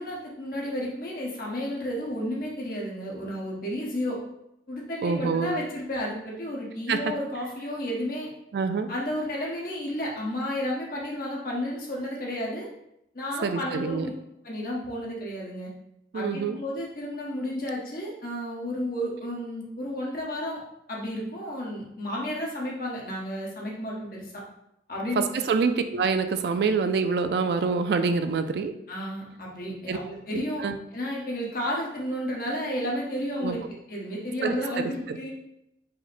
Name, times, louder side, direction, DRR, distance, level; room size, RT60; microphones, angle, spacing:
voice 1, 0.0-4.2 4.7-8.3 8.9-12.7 13.1-14.1 14.4-15.7 16.1-20.6 20.9-24.4 24.9-25.2 28.9-30.6 30.9-33.6 33.9-35.3, left 1 dB, 50° left, -3 dB, 1.1 m, -32 dB
voice 2, 5.0-5.6 6.9-7.1 8.5-8.9 13.4-14.1 16.1-16.6 25.2-28.7 29.9-30.0 30.3-30.8 33.4-33.6 34.4-35.2, right 5 dB, 60° right, 9 dB, 0.3 m, -26 dB
4.7 x 2.1 x 4.1 m, 0.82 s
head